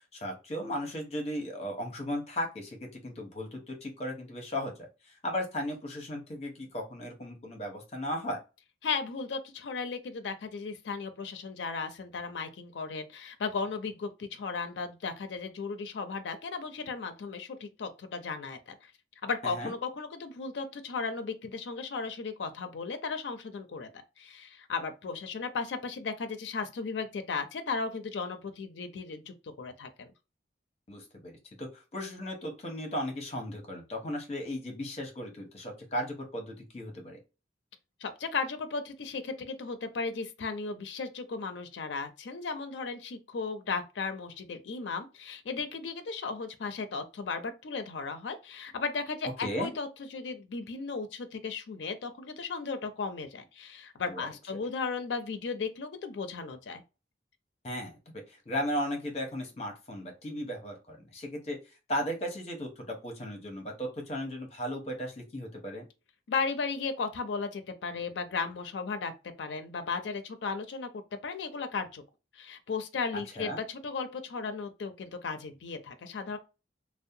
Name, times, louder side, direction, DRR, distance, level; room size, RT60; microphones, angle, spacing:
voice 1, 0.1-4.7 5.1-8.4 19.4-19.7 30.9-37.2 49.4-49.7 54.1-54.2 54.5-54.6 57.6-61.6 61.9-65.8 73.4-73.6, equal, 35° left, 0.8 m, -36 dB
voice 2, 8.8-18.9 19.2-23.9 24.2-30.1 38.0-56.8 66.3-69.1 69.4-72.0 72.3-76.4, left 4 dB, 75° left, 0.4 m, -35 dB
2.6 x 2.0 x 2.6 m
head